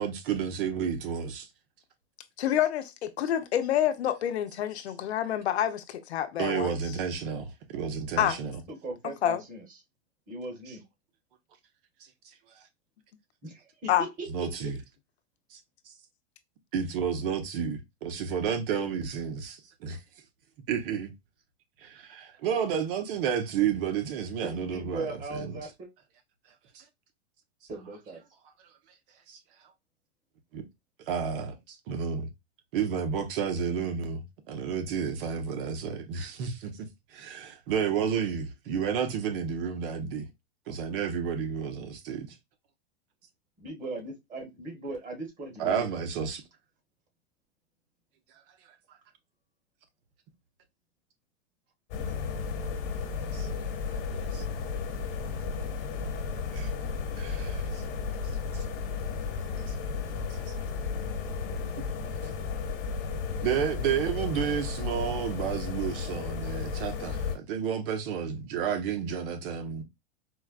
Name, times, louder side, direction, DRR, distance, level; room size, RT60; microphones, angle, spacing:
voice 1, 0.0-1.5 6.4-8.6 14.3-14.8 15.5-15.6 16.7-20.0 20.7-21.1 21.8-25.6 26.7-26.8 29.3-29.4 30.5-30.6 31.1-32.3 32.7-36.7 37.1-40.3 40.7-42.3 45.6-46.4 53.3-53.5 54.3-54.4 56.5-56.7 57.2-57.8 58.5-58.6 63.4-69.8, right 7 dB, 60° right, 1.0 m, -31 dB
voice 2, 2.4-6.7 8.2-8.4 9.2-9.4 13.9-14.1, left 11 dB, 90° left, 0.7 m, -27 dB
voice 3, 8.7-9.6 10.3-10.8 13.4-14.5 24.4-25.9 27.7-28.2 43.6-46.0, right 2 dB, 25° right, 1.5 m, -39 dB
sound 1, 51.9-67.4, left 5 dB, 55° left, 1.3 m, -33 dB
4.4 x 2.2 x 2.3 m
supercardioid pair, 135°, 32 cm